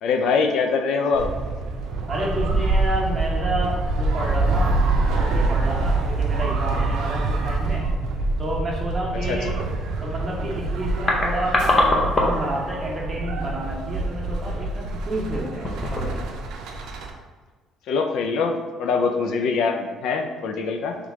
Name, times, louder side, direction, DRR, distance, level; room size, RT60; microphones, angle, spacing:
voice 1, 0.0-1.3 9.1-9.6 17.9-21.0, left 4 dB, 70° left, 5 dB, 0.4 m, -23 dB
sound 1, 1.1-17.1, right 3 dB, 80° right, 0.5 m, -25 dB
voice 2, 2.1-4.8 5.1-7.8 8.4-9.5 10.0-16.2, right 1 dB, 25° right, -4 dB, 1.1 m, -30 dB
sound 2, 5.6-5.9 6.2-6.3 7.0-7.5 10.5-10.6 10.8-12.6 12.8-13.0 13.7-14.0 14.5-14.7 15.5-16.3 16.6-16.7, left 1 dB, 25° left, 0.7 m, -24 dB
3.3 x 3.2 x 3.6 m, 1.4 s
cardioid pair, 135°, 0 cm